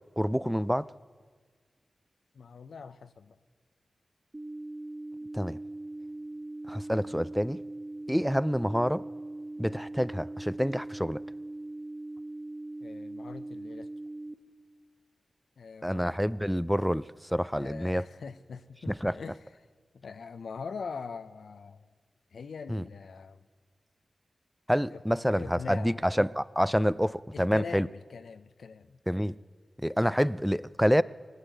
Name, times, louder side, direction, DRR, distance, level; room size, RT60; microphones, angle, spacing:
voice 1, 0.2-0.9 5.3-5.6 6.7-7.6 8.1-9.0 9.6-11.2 15.8-17.0 17.3-18.0 18.9-19.1 22.7-22.8 24.7-27.9 29.1-29.3 29.8-31.0, equal, ahead, 17 dB, 0.3 m, -27 dB
voice 2, 2.3-3.4 12.8-13.9 15.6-16.4 17.5-19.4 19.9-21.9 22.3-23.5 24.8-25.0 25.3-26.0 27.3-29.0, left 5 dB, 85° left, 11 dB, 0.5 m, -42 dB
sound 1, 4.3-14.3, right 2 dB, 25° right, 0.9 m, -40 dB
19.0 x 8.2 x 8.0 m, 1.5 s
cardioid pair, 50°, 0 cm